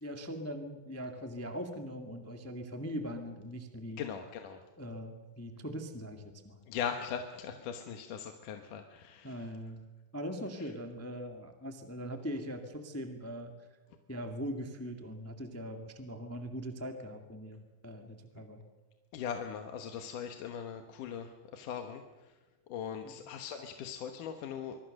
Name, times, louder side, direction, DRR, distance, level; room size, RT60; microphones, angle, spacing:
voice 1, 0.0-4.0 4.8-6.6 9.2-9.8 10.1-13.5 14.1-18.6 23.0-23.2, equal, 20° left, 5 dB, 0.4 m, -41 dB
voice 2, 4.0-4.6 6.7-9.5 10.6-10.7 18.4-18.5 19.1-22.4 22.7-24.8, left 8 dB, 70° left, 5 dB, 2.6 m, -40 dB
24.5 x 24.0 x 6.5 m, 1.2 s
omnidirectional pair, 4.1 m